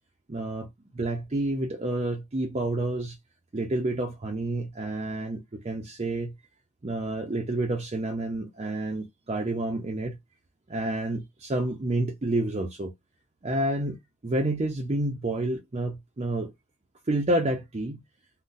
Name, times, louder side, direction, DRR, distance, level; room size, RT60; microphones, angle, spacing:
voice 1, 0.3-3.2 3.5-6.3 6.8-10.2 10.7-12.9 13.4-14.0 14.2-16.5 17.1-18.0, right 1 dB, 30° right, 0.5 m, -29 dB
3.8 x 2.1 x 2.5 m
head